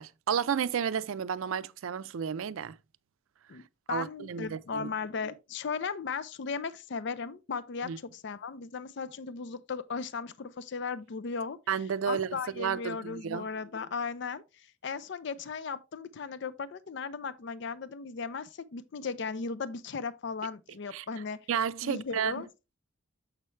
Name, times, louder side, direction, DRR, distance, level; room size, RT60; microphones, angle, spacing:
voice 1, 0.0-2.8 3.9-4.9 7.8-8.0 11.7-13.4 20.9-21.0 21.5-22.3, right 7 dB, 80° right, 0.4 m, -32 dB
voice 2, 3.9-11.6 12.1-21.5 21.8-22.5, left 5 dB, 55° left, 0.4 m, -36 dB
7.2 x 5.6 x 3.1 m
head